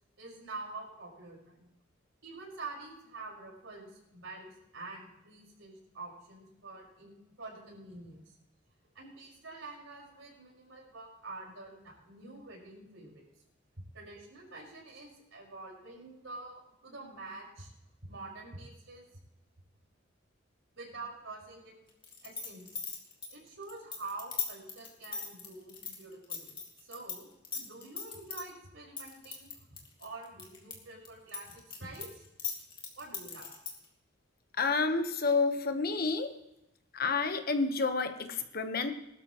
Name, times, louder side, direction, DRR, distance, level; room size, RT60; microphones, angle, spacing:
voice 1, 0.2-1.7 2.2-8.2 8.9-13.3 13.9-17.7 18.0-19.0 20.8-21.7 22.2-22.8 23.3-26.5 26.8-32.3 33.0-33.5, right 3 dB, 80° right, -2 dB, 5.5 m, -47 dB
sound 1, 22.0-27.2 27.4-28.4 29.0-30.7 31.1-33.9, left 6 dB, 25° left, 2.7 m, -38 dB
voice 2, 34.6-36.3 36.9-38.9, left 4 dB, 50° left, 7 dB, 1.2 m, -29 dB
21.0 x 12.5 x 3.1 m, 0.87 s
head